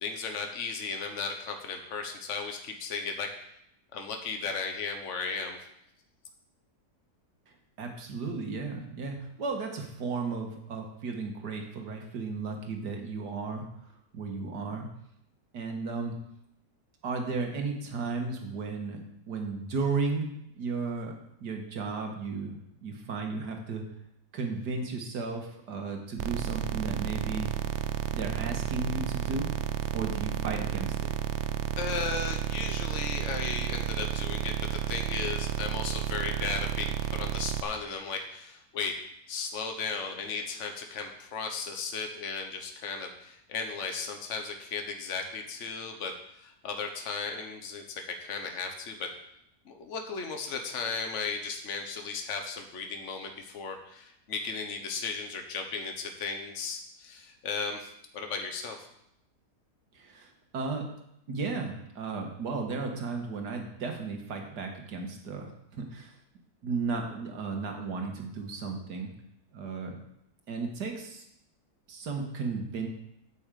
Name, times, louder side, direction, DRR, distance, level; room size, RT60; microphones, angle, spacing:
voice 1, 0.0-3.3 3.9-5.6 31.8-39.0 39.3-49.1 49.6-58.8, left 5 dB, 50° left, 4 dB, 1.4 m, -35 dB
voice 2, 7.8-13.6 14.1-14.9 15.5-16.2 17.0-20.3 20.6-21.2 21.4-23.8 24.3-27.5 28.1-29.5 29.9-31.0 59.9-60.9 61.3-66.1 66.6-69.1 69.5-70.0 70.5-71.2 71.9-72.9, right 4 dB, 90° right, 3 dB, 2.0 m, -34 dB
sound 1, 26.2-37.6, right 11 dB, 65° right, 0.7 m, -32 dB
8.5 x 6.3 x 7.5 m, 0.77 s
omnidirectional pair, 1.7 m